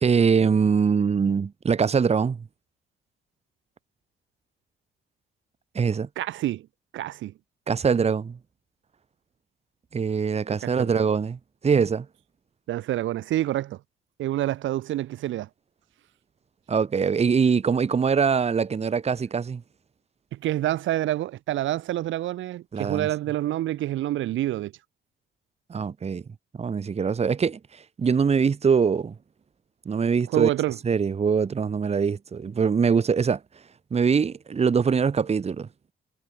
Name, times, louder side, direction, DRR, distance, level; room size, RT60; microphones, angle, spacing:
voice 1, 0.0-2.4 5.7-6.1 7.7-8.4 9.9-12.1 16.7-19.6 22.7-23.1 25.7-26.2 26.6-27.6 28.0-29.1 29.9-30.5 30.8-33.4 33.9-35.7, right 6 dB, 30° right, 1.0 m, -23 dB
voice 2, 6.2-6.6 6.9-7.3 10.6-11.0 12.7-13.8 14.2-15.5 20.3-24.7 30.3-30.8, right 14 dB, 75° right, 0.8 m, -27 dB
cardioid pair, 90°, 20 cm